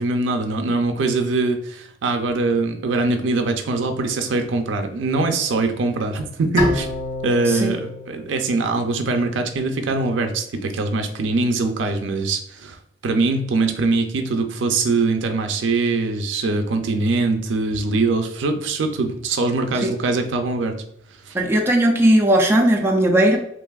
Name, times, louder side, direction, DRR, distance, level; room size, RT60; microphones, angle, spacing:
voice 1, 0.0-6.9 7.2-12.8 13.0-20.7 21.2-21.3, right 3 dB, 90° right, 5 dB, 0.4 m, -22 dB
Bowed string instrument, 6.6-9.8, left 1 dB, 55° left, 1.2 m, -27 dB
voice 2, 7.5-7.8 19.8-19.9 21.3-23.4, right 1 dB, 15° right, 0 dB, 0.4 m, -17 dB
3.3 x 2.5 x 2.3 m, 0.72 s
head